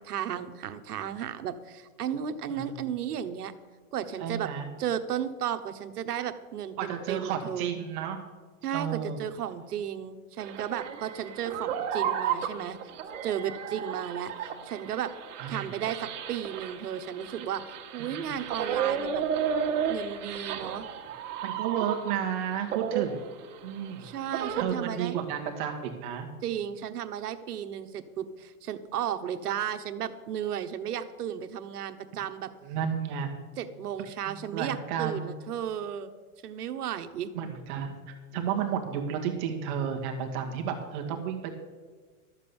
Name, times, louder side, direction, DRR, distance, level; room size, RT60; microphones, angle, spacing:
voice 1, 0.0-3.5 3.9-4.5 4.8-7.7 8.6-12.8 13.2-15.1 15.5-17.6 17.9-19.2 19.9-20.8 24.0-25.2 26.4-32.5 33.6-36.1 36.4-37.3, right 9 dB, 85° right, 9 dB, 1.2 m, -34 dB
voice 2, 4.2-4.7 6.8-8.2 8.7-9.2 15.4-15.6 18.0-18.3 21.4-23.2 23.6-24.1 24.6-26.3 32.6-33.3 34.5-35.3 37.3-41.5, right 8 dB, 30° right, 2 dB, 1.4 m, -32 dB
sound 1, 10.4-22.4 22.7-24.6, right 8 dB, 55° right, 1.7 m, -33 dB
12.5 x 7.5 x 7.0 m, 1.4 s
supercardioid pair, 165°, 44 cm